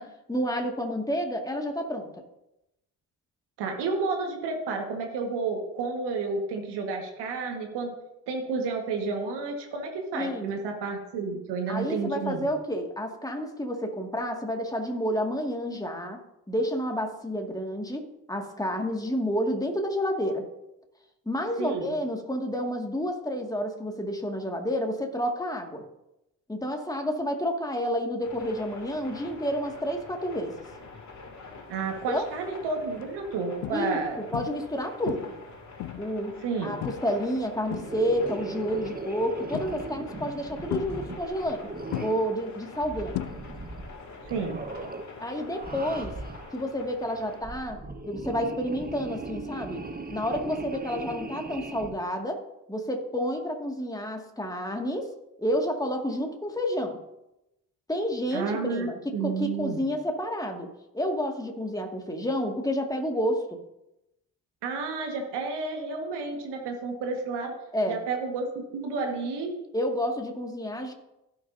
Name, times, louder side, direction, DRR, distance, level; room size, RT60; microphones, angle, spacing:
voice 1, 0.0-2.2 10.1-10.5 11.7-16.2 16.5-20.5 21.3-25.8 26.5-30.5 32.1-32.2 33.7-35.3 36.0-36.3 36.6-41.7 42.0-43.2 45.2-46.1 46.5-49.8 50.1-52.4 52.7-55.1 55.4-57.0 57.9-60.7 60.9-63.4 67.7-68.0 69.7-70.9, equal, 10° left, 2 dB, 2.1 m, -30 dB
voice 2, 3.6-7.9 8.3-12.5 21.6-21.9 31.7-34.2 36.4-36.8 44.2-44.6 58.3-59.9 64.6-67.5 67.9-69.5, right 4 dB, 75° right, 2 dB, 1.7 m, -31 dB
sound 1, 28.2-47.4, left 3 dB, 45° left, 2.5 m, -46 dB
sound 2, 32.0-32.3 32.9-33.0 33.6-34.0 34.3-34.7 35.1-36.2 36.8-37.2 37.5-38.3 39.5-40.0 40.7-41.6 41.9-43.8 44.1-44.5 46.5-46.6, left 15 dB, 70° left, 0.6 m, -36 dB
sound 3, 37.7-42.3 42.8-43.9 44.2-45.1 45.5-46.6 47.3-52.0, right 3 dB, 20° right, 1.2 m, -38 dB
16.5 x 6.6 x 2.7 m, 0.89 s
hypercardioid pair, 45°, 41 cm